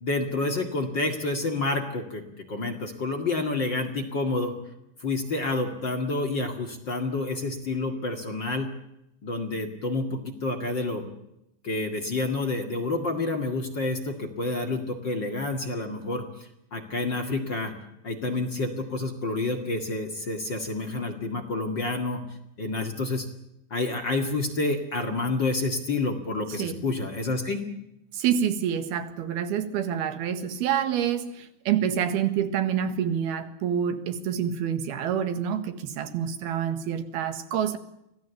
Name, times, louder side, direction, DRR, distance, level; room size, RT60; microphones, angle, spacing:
voice 1, 0.0-2.2 2.5-4.5 5.0-8.7 9.2-11.0 11.6-17.7 18.0-22.2 22.6-23.3 23.7-27.6, left 2 dB, 35° left, 4 dB, 2.2 m, -29 dB
voice 2, 28.1-37.8, right 9 dB, 90° right, 10 dB, 3.6 m, -27 dB
26.0 x 17.0 x 8.3 m, 0.84 s
omnidirectional pair, 4.4 m